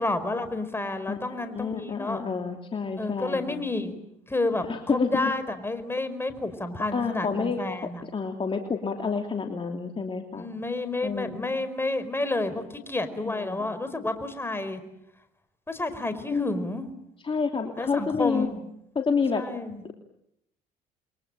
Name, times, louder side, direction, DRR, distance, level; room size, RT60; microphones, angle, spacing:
voice 1, 0.0-2.2 3.0-3.9 4.3-8.0 10.3-14.8 15.7-16.9 17.8-18.6 19.3-19.8, left 2 dB, 15° left, 10 dB, 4.9 m, -30 dB
voice 2, 1.1-3.6 4.6-5.3 6.9-10.5 11.0-11.5 13.2-13.7 16.3-16.6 17.2-18.5 18.9-19.5, left 5 dB, 30° left, 4 dB, 3.0 m, -29 dB
29.0 x 23.0 x 9.0 m, 0.81 s
supercardioid pair, 80°, 18 cm